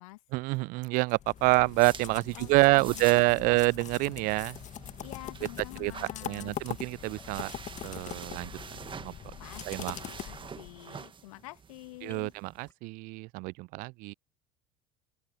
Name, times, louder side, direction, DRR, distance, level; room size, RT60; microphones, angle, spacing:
voice 1, 0.3-4.6 5.8-5.9 6.2-7.5 7.8-8.5 9.0-9.1 9.7-10.0 12.0-14.1, right 24 dB, 50° right, 0.4 m, -27 dB
sound 1, 1.1-10.8, left 11 dB, 40° left, 1.8 m, -43 dB
sound 2, 1.4-12.7, right 6 dB, 25° right, 1.6 m, -48 dB
sound 3, 1.9-12.9, left 2 dB, 10° left, 4.4 m, -62 dB
voice 2, 2.3-3.6 5.0-6.5 9.4-12.3, left 20 dB, 65° left, 1.6 m, -48 dB
open air
figure-of-eight pair, 65°, 19 cm